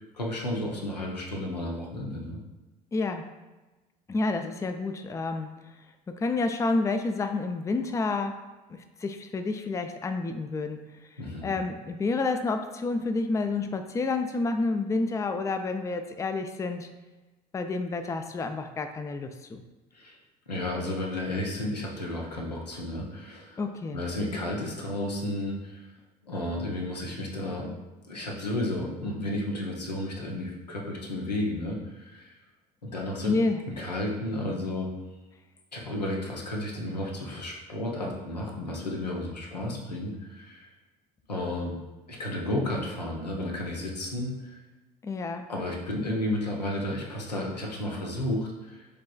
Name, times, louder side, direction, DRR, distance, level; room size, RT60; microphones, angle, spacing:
voice 1, 0.1-2.4 11.2-11.5 19.9-20.2 20.5-23.6 23.9-25.9 26.2-27.7 28.1-32.4 32.8-33.3 33.7-34.9 35.7-40.7 41.3-41.8 42.1-44.6 45.5-48.9, left 1 dB, 90° left, -1 dB, 0.7 m, -32 dB
voice 2, 2.9-3.2 4.1-5.5 6.2-8.4 8.7-10.8 11.4-16.9 17.5-19.6 23.6-24.0 33.2-33.6 45.0-45.5, left 3 dB, 15° left, 7 dB, 0.4 m, -29 dB
6.6 x 3.1 x 2.3 m, 1.1 s
figure-of-eight pair, 60°, 20 cm